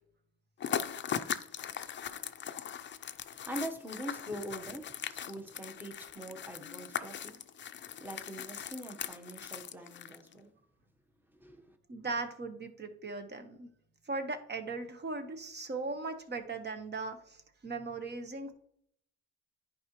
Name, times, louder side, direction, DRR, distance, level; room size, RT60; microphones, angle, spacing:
sound 1, 0.6-10.3, left 8 dB, 40° left, 0.5 m, -40 dB
voice 1, 3.4-7.3 8.0-10.5 11.3-11.8, right 1 dB, 5° right, 5 dB, 1.1 m, -43 dB
voice 2, 11.9-13.7 14.1-17.2 17.6-18.5, right 3 dB, 35° right, 8 dB, 1.1 m, -38 dB
10.5 x 4.9 x 3.0 m, 0.69 s
cardioid pair, 90°, 30 cm